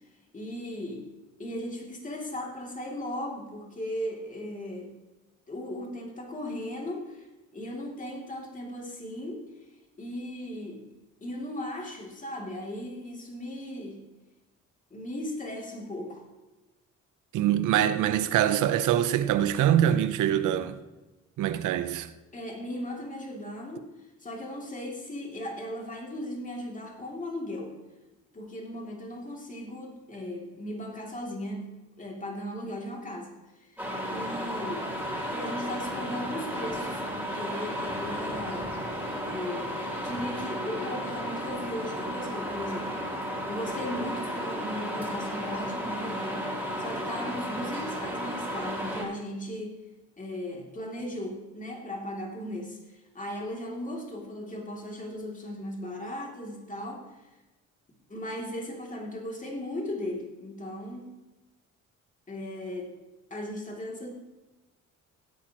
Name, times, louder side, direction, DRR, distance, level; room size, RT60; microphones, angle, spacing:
voice 1, 0.3-1.1 1.4-4.9 5.5-7.3 7.5-9.5 10.0-10.8 11.2-14.0 14.9-16.2 22.3-23.9 24.2-27.7 28.3-31.7 32.0-33.3 33.6-33.8 34.1-34.9 35.3-38.7 39.3-39.7 40.0-49.7 50.2-57.0 58.1-61.1 62.3-62.9 63.3-64.1, left 1 dB, 25° left, 2.9 m, -37 dB
voice 2, 17.3-20.8 21.4-22.1, right 11 dB, 85° right, 0.8 m, -24 dB
sound 1, 33.8-49.0, equal, 5° right, 4.1 m, -33 dB
16.5 x 8.6 x 3.0 m
cardioid pair, 90°, 30 cm